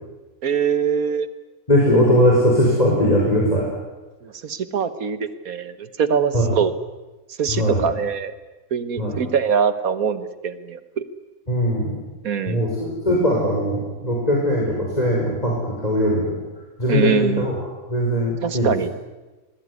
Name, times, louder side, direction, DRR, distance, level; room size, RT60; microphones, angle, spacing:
voice 1, 0.4-1.3 4.2-6.7 7.4-8.3 8.7-11.0 12.2-12.6 16.9-17.5 18.4-18.9, right 7 dB, 70° right, 13 dB, 1.7 m, -23 dB
voice 2, 1.7-3.7 6.3-6.5 7.5-7.9 9.0-9.2 11.5-11.9 12.5-16.4 16.8-17.6 17.9-18.7, equal, 25° left, -2 dB, 5.3 m, -20 dB
27.5 x 20.5 x 9.7 m, 1.2 s
omnidirectional pair, 1.6 m